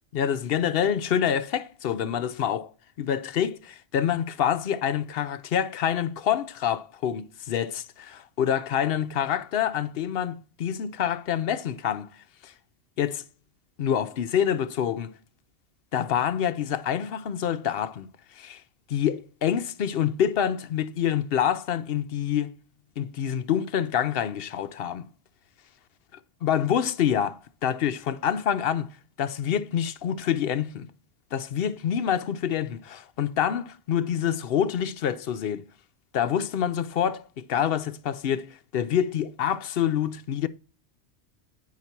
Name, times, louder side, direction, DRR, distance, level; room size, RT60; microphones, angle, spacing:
voice 1, 0.1-2.7 3.0-12.1 12.4-12.5 13.0-13.2 13.8-15.1 15.9-18.1 18.4-18.6 18.9-22.5 23.0-25.1 26.4-30.9 31.3-35.7 36.1-40.5, left 9 dB, 60° left, 0.8 m, -27 dB
9.5 x 4.9 x 4.3 m
omnidirectional pair, 1.2 m